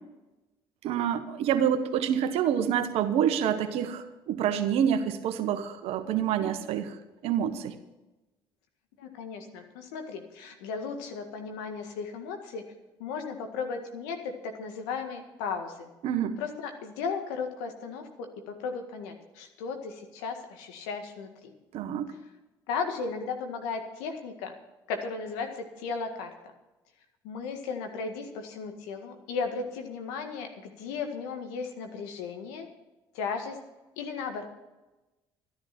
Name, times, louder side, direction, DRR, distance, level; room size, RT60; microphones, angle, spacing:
voice 1, 0.8-7.0 7.2-7.8 16.0-16.4 21.7-22.1, right 9 dB, 70° right, 9 dB, 1.2 m, -27 dB
voice 2, 9.0-12.6 13.0-15.9 16.4-21.5 22.7-24.5 24.9-26.3 27.2-32.7 33.1-33.6 34.0-34.4, left 5 dB, 85° left, 5 dB, 1.8 m, -35 dB
12.5 x 11.5 x 6.0 m, 1.1 s
hypercardioid pair, 60°, 11 cm